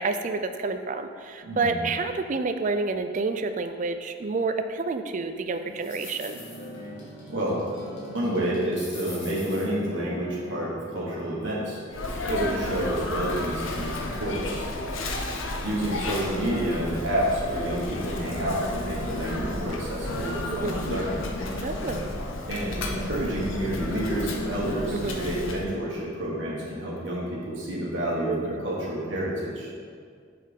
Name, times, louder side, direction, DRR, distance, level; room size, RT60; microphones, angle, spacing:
voice 1, 0.0-6.4 12.3-12.6 20.5-20.8 21.6-22.1 24.9-25.2 28.3-28.6, right 3 dB, 40° right, 8 dB, 0.4 m, -29 dB
voice 2, 1.4-1.8 7.3-7.6 8.1-11.8 12.3-14.7 15.6-21.2 22.5-29.7, right 1 dB, 70° right, -6 dB, 1.4 m, -29 dB
sound 1, 5.5-11.3, equal, 65° left, 1.7 m, -42 dB
Sneeze, 11.9-25.7, left 2 dB, 85° left, 0.7 m, -32 dB
6.3 x 4.2 x 5.1 m, 2.1 s
head